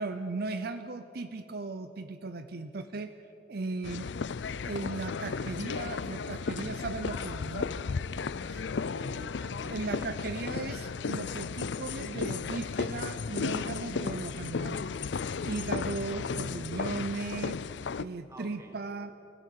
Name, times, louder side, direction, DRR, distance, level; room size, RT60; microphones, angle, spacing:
voice 1, 0.0-3.1 3.5-4.1 4.6-7.7 8.5-8.6 9.7-14.9 15.4-17.6 18.0-19.1, right 3 dB, 60° right, 10 dB, 0.7 m, -37 dB
sound 1, 3.8-18.0, left 5 dB, 80° left, 0.5 m, -34 dB
voice 2, 8.4-10.1 18.3-18.8, right 1 dB, 15° right, 3 dB, 2.4 m, -48 dB
29.0 x 16.0 x 6.7 m, 2.9 s
head